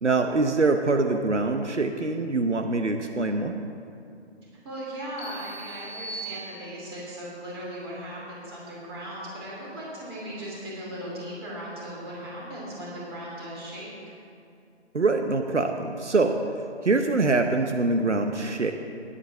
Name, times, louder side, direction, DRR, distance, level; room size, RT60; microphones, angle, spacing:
voice 1, 0.0-3.5 14.9-16.4 16.8-18.7, right 3 dB, 80° right, 5 dB, 0.9 m, -24 dB
voice 2, 4.6-13.9, equal, 20° right, -6 dB, 2.8 m, -37 dB
sound 1, 5.2-7.0, right 3 dB, 10° left, 2.3 m, -39 dB
10.0 x 8.8 x 6.5 m, 2.5 s
figure-of-eight pair, 150°, 35 cm